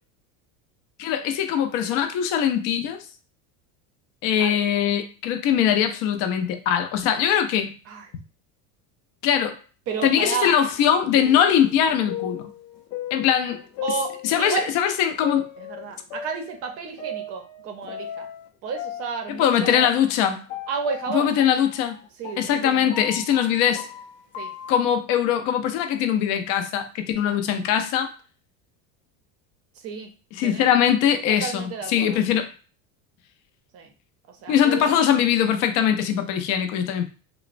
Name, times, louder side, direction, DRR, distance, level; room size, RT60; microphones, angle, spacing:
voice 1, 1.0-3.0 4.2-7.7 9.2-9.6 10.0-12.5 13.1-13.6 13.9-14.0 14.2-15.5 19.3-20.4 21.1-22.0 22.4-23.9 24.7-28.1 30.3-32.5 34.5-37.1, left 9 dB, 50° left, 0.5 m, -21 dB
sound 1, 9.9-14.7 15.2-18.5 18.7-24.9, left 8 dB, 85° left, 0.6 m, -37 dB
voice 2, 9.9-10.5 13.8-14.7 15.6-18.3 18.6-19.9 20.7-21.4 22.2-23.0 24.4-24.5 27.2-27.4 29.8-30.1 30.4-30.7 31.3-32.2 33.7-33.9 34.4-34.9, right 6 dB, 35° right, 0.5 m, -31 dB
3.0 x 2.1 x 2.4 m
supercardioid pair, 150°, 42 cm